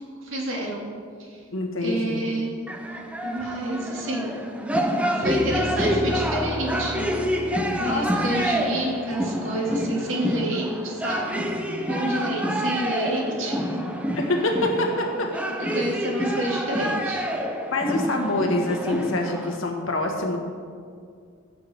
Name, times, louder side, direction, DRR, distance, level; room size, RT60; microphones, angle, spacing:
voice 1, 0.2-0.9 1.2-1.4 1.8-2.7 3.2-4.3 5.1-7.1 7.8-11.5 11.9-13.8 15.2-15.3 15.6-17.3, right 1 dB, 80° right, -2 dB, 2.1 m, -29 dB
voice 2, 1.5-2.2 7.8-8.2 12.0-12.6 14.2-15.3 17.7-20.4, left 2 dB, 85° left, 2 dB, 1.4 m, -26 dB
sound 1, 2.7-19.6, equal, 5° right, 0.6 m, -28 dB
Piano, 5.2-10.8, left 1 dB, 40° left, 1.3 m, -35 dB
15.5 x 6.9 x 3.4 m, 2.2 s
head